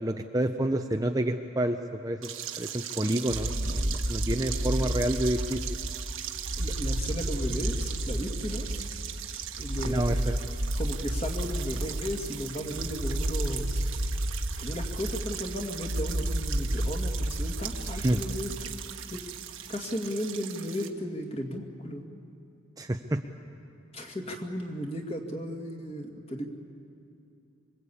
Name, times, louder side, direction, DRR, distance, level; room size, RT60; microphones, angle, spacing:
voice 1, 0.0-2.3 2.6-5.6 9.8-10.4 17.9-18.2 22.8-23.2, right 1 dB, 15° right, 4 dB, 0.6 m, -29 dB
sound 1, 2.2-20.9, right 10 dB, 75° right, 1.4 m, -39 dB
sound 2, 3.3-18.8, right 1 dB, 45° right, 1.2 m, -32 dB
voice 2, 4.5-4.9 6.6-8.7 9.6-10.0 10.8-13.9 14.6-18.5 19.1-19.2 19.7-22.0 23.9-26.5, equal, 30° left, 2 dB, 2.2 m, -35 dB
25.5 x 21.5 x 8.6 m, 2.6 s
head